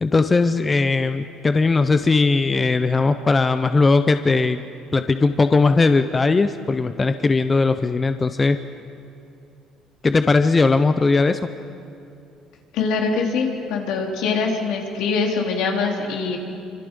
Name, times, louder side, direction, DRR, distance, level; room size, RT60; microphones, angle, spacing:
voice 1, 0.0-4.6 4.9-8.6 10.0-11.4, left 3 dB, 20° left, 10 dB, 0.6 m, -18 dB
voice 2, 12.7-16.4, left 4 dB, 75° left, 1 dB, 3.4 m, -23 dB
26.0 x 25.5 x 5.4 m, 2.6 s
cardioid pair, 135°, 0 cm